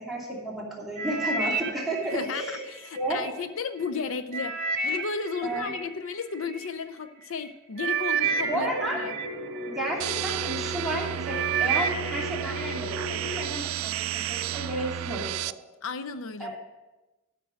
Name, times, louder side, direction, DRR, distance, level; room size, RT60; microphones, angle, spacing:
voice 1, 0.0-2.6 2.9-3.2 5.4-5.7 8.5-9.0 9.7-15.6 16.4-16.6, right 1 dB, ahead, -5 dB, 2.6 m, -32 dB
sound 1, 1.0-3.3 3.8-6.7 7.4-7.5 7.8-10.2 10.7-11.0 11.3-12.8 13.1-13.6 14.2-14.3, right 5 dB, 50° right, 1.1 m, -31 dB
voice 2, 2.1-9.1 15.8-16.6, left 5 dB, 65° left, 10 dB, 0.6 m, -34 dB
sound 2, 8.2-13.5, left 2 dB, 20° left, 2.2 m, -37 dB
sound 3, 10.0-15.5, right 11 dB, 80° right, 0.4 m, -32 dB
12.5 x 6.1 x 6.3 m, 1.1 s
head